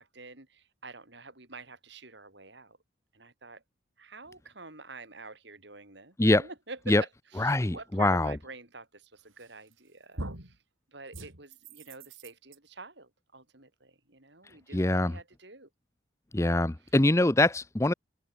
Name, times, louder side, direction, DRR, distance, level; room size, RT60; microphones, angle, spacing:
voice 1, 0.0-2.8 3.1-3.6 4.0-10.6 10.9-15.7, right 3 dB, 60° right, 3.9 m, -47 dB
voice 2, 7.4-8.4 14.7-15.1 16.3-17.9, left 1 dB, 15° left, 0.6 m, -24 dB
sound 1, 9.4-9.8 10.2-10.6 11.1-12.6, right 1 dB, 90° right, 5.4 m, -42 dB
head